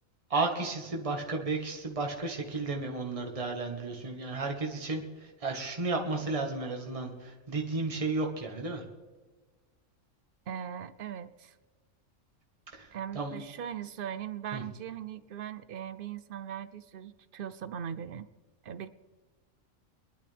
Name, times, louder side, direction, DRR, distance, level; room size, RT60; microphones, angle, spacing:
voice 1, 0.3-8.8 12.7-12.9 13.1-13.4 14.5-14.6, right 3 dB, 25° right, 1 dB, 1.7 m, -33 dB
voice 2, 10.5-11.5 12.9-18.3 18.6-18.9, right 9 dB, 55° right, 14 dB, 0.7 m, -39 dB
22.5 x 11.5 x 3.5 m, 1.3 s
omnidirectional pair, 1.3 m